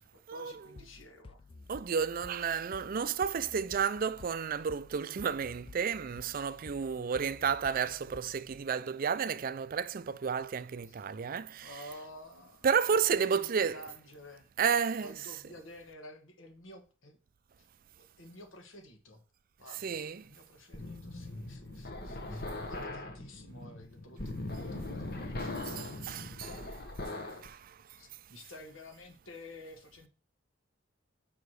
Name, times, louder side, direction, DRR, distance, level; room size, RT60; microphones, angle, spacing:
voice 1, 0.0-1.4 10.8-11.0 11.6-13.0 13.3-14.5 15.0-17.2 17.6-17.7 17.9-19.2 19.6-26.0 27.1-27.7 28.0-30.1, left 1 dB, 80° left, 1.8 m, -52 dB
sound 1, 0.8-8.6, left 3 dB, 25° left, 0.3 m, -53 dB
voice 2, 1.7-11.7 12.6-13.8 14.6-15.1 19.8-20.2 25.4-26.6 27.4-27.6, right 6 dB, 45° right, 0.4 m, -31 dB
sound 2, 20.7-27.5, left 2 dB, 50° left, 1.1 m, -40 dB
5.8 x 4.8 x 6.3 m
head